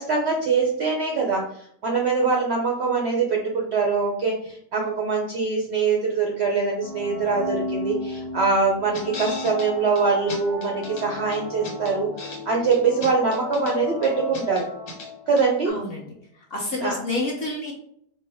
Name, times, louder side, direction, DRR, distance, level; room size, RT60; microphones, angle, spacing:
voice 1, 0.0-1.4 1.8-14.7 15.3-15.7 16.8-17.0, right 4 dB, 65° right, 0 dB, 0.6 m, -23 dB
sound 1, 6.8-15.4, left 3 dB, 65° left, 1.2 m, -35 dB
sound 2, 8.9-9.7 9.9-10.0 10.3-11.0 11.3-12.4 12.7-13.7 14.0-15.1 15.4-15.5, left 2 dB, 90° left, 1.6 m, -37 dB
voice 2, 15.6-17.7, left 2 dB, 45° left, -3 dB, 0.9 m, -29 dB
4.5 x 2.1 x 3.4 m, 0.67 s
omnidirectional pair, 1.7 m